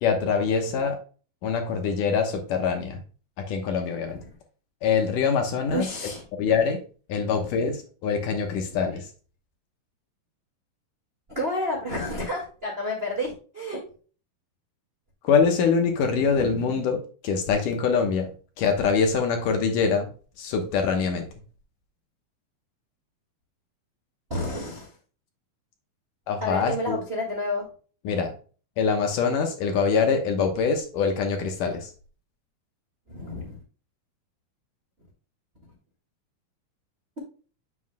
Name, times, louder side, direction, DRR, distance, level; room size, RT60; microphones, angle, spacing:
voice 1, 0.0-1.0 1.4-3.0 3.4-4.2 4.8-5.9 6.4-6.8 7.1-9.1 15.2-18.3 18.6-20.1 20.4-21.3 26.3-27.0 28.0-28.3 28.8-31.9, left 5 dB, 65° left, 4 dB, 2.5 m, -24 dB
voice 2, 5.7-6.2 7.2-7.4 8.7-8.8 11.3-13.8 16.2-16.5 24.3-24.9 26.4-27.6 33.1-33.5, left 1 dB, 25° right, -1 dB, 1.4 m, -30 dB
8.0 x 7.3 x 2.2 m, 0.38 s
omnidirectional pair, 4.3 m